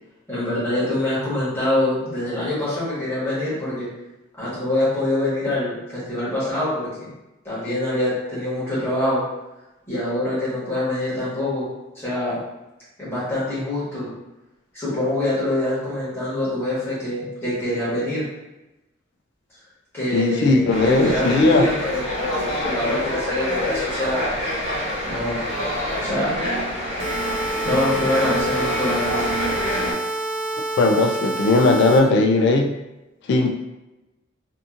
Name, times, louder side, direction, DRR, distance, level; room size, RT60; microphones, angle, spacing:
voice 1, 0.3-3.9 4.4-7.1 7.4-9.2 9.8-11.7 11.9-12.4 13.0-14.1 14.7-18.2 19.9-24.3 25.1-25.4 26.0-26.4 27.6-29.3, left 1 dB, 10° left, -11 dB, 1.3 m, -25 dB
voice 2, 20.1-21.7 30.8-32.7 33.3-33.5, left 2 dB, 60° left, 4 dB, 0.3 m, -17 dB
sound 1, 20.7-29.9, equal, 85° left, 1.3 m, -27 dB
sound 2, 27.0-32.0, right 2 dB, 60° right, 0.5 m, -28 dB
2.8 x 2.5 x 2.4 m, 1.0 s
head